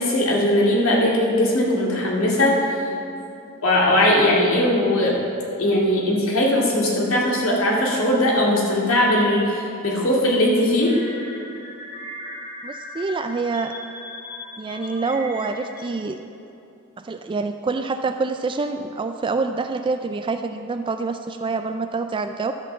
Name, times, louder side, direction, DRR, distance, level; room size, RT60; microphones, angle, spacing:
voice 1, 0.0-2.9 3.6-5.2 5.6-11.0, left 1 dB, 80° left, -3 dB, 2.3 m, -19 dB
sound 1, 10.8-15.9, left 1 dB, 50° left, 2.7 m, -38 dB
voice 2, 12.6-13.7 14.6-16.2 17.0-22.5, right 4 dB, 25° right, 7 dB, 0.3 m, -26 dB
12.0 x 5.9 x 7.3 m, 2.7 s
head